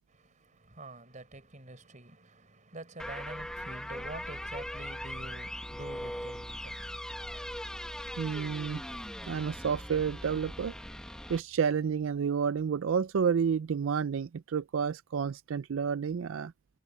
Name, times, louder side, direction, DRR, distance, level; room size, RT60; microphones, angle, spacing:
voice 1, 0.1-7.4, right 2 dB, 40° right, 4.2 m, -47 dB
sound 1, 3.0-11.4, equal, 5° left, 1.4 m, -40 dB
sound 2, 8.0-13.0, equal, 25° left, 2.3 m, -61 dB
voice 2, 8.2-8.8 9.2-10.7 11.3-16.5, right 6 dB, 80° right, 0.4 m, -30 dB
head